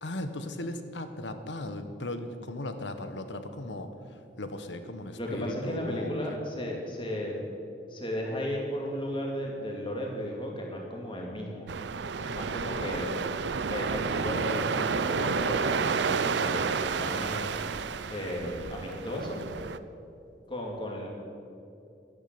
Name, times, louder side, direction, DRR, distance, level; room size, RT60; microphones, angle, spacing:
voice 1, 0.0-3.9 4.4-6.1, left 1 dB, 75° left, 9 dB, 1.2 m, -37 dB
voice 2, 5.2-7.4 7.9-11.7 12.2-13.1 13.7-17.6 18.1-19.4 20.5-21.1, equal, 25° left, -1 dB, 2.6 m, -34 dB
sound 1, 11.7-19.8, right 5 dB, 75° right, 0.5 m, -30 dB
12.0 x 11.0 x 7.8 m, 2.6 s
head